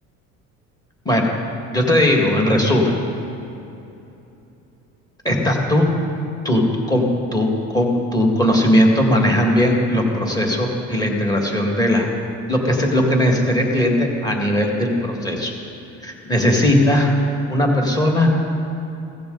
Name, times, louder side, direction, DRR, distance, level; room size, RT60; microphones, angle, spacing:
voice 1, 1.7-3.0 5.2-6.0 6.4-7.0 7.3-12.1 12.5-15.5 16.0-17.1 17.5-18.3, left 1 dB, 10° left, 0 dB, 1.9 m, -18 dB
15.5 x 15.5 x 4.0 m, 2.8 s
cardioid pair, 145°, 30 cm